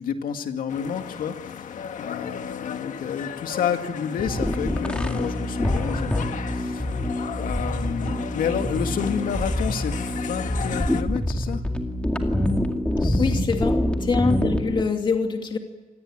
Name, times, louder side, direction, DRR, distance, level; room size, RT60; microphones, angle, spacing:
voice 1, 0.0-6.9 7.3-11.6 13.0-13.4, left 7 dB, 90° left, 6 dB, 2.2 m, -30 dB
sound 1, 0.7-11.0, left 8 dB, 65° left, 1.5 m, -35 dB
sound 2, 4.2-14.8, left 1 dB, 10° left, 2.2 m, -26 dB
voice 2, 13.2-15.6, left 4 dB, 35° left, 4 dB, 2.7 m, -24 dB
27.0 x 20.0 x 8.9 m, 1.2 s
wide cardioid pair, 165°, 14 cm